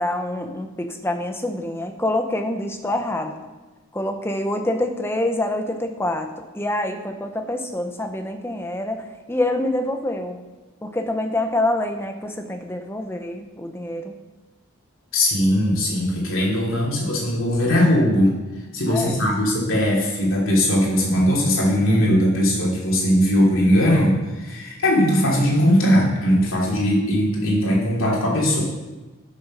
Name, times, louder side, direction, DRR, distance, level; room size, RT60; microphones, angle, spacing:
voice 1, 0.0-3.4 3.9-10.4 10.8-14.1 18.9-19.3, left 1 dB, 10° left, 5 dB, 0.7 m, -26 dB
voice 2, 15.1-18.3 18.7-28.6, equal, 70° left, -3 dB, 2.8 m, -19 dB
8.7 x 6.4 x 6.3 m, 1.2 s
head